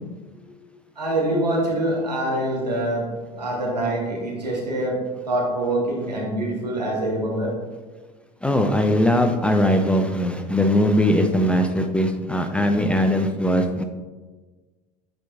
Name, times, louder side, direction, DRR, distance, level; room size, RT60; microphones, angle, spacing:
voice 1, 1.0-5.0 5.3-7.5, right 1 dB, 85° right, -3 dB, 1.5 m, -25 dB
voice 2, 8.4-13.8, equal, 5° left, 6 dB, 0.4 m, -20 dB
8.8 x 4.6 x 2.3 m, 1.3 s
figure-of-eight pair, 75°, 21 cm